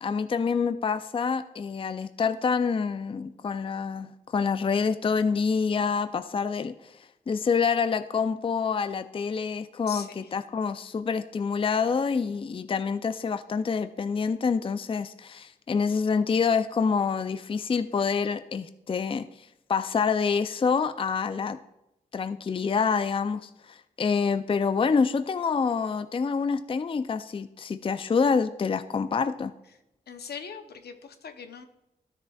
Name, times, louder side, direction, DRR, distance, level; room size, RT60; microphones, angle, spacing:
voice 1, 0.0-6.9 7.3-19.3 19.7-21.6 22.1-29.5, left 5 dB, 35° left, 11 dB, 0.4 m, -27 dB
voice 2, 9.9-10.4 30.1-31.6, left 6 dB, 75° left, 7 dB, 0.7 m, -41 dB
13.0 x 6.7 x 2.3 m, 0.91 s
cardioid pair, 50°, 16 cm